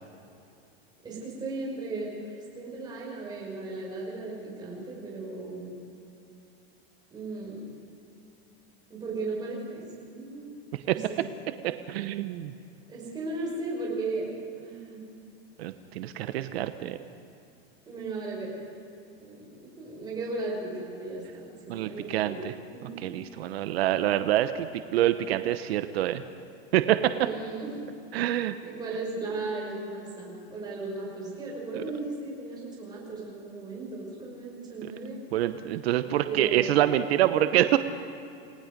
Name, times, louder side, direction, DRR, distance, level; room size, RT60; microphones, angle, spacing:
voice 1, 1.0-5.7 7.1-7.6 8.9-10.4 10.8-11.2 12.9-14.3 14.6-15.0 17.9-18.6 19.2-22.4 22.7-22.9 27.2-27.9 28.6-35.2 36.3-36.6, right 3 dB, 15° right, -3 dB, 5.6 m, -36 dB
voice 2, 11.6-12.5 15.6-17.0 21.7-22.5 23.0-26.2 26.7-27.1 28.1-28.6 34.8-34.9 35.3-37.8, right 13 dB, 80° right, 10 dB, 1.0 m, -26 dB
29.0 x 18.5 x 5.3 m, 2.7 s
supercardioid pair, 175°, 30 cm